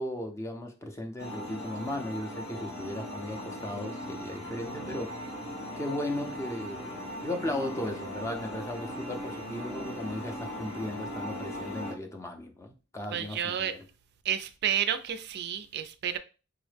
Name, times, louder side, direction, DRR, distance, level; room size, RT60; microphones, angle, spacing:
voice 1, 0.0-5.2 5.8-6.9 7.2-13.9, left 1 dB, 15° left, 0.5 m, -36 dB
sound 1, 1.2-11.9, equal, 90° left, 1.9 m, -38 dB
voice 2, 13.1-13.7 14.3-16.2, right 9 dB, 50° right, 0.3 m, -30 dB
4.7 x 2.1 x 3.2 m
head